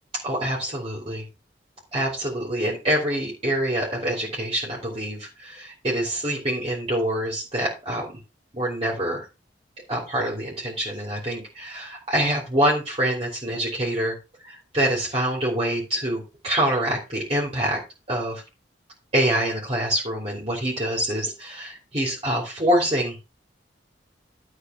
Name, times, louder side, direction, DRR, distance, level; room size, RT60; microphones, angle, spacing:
voice 1, 0.2-1.2 1.9-8.0 8.5-9.2 9.9-14.1 14.4-17.8 18.1-18.4 19.1-23.2, right 1 dB, 30° right, -4 dB, 3.3 m, -25 dB
12.0 x 4.9 x 5.7 m, 0.29 s
head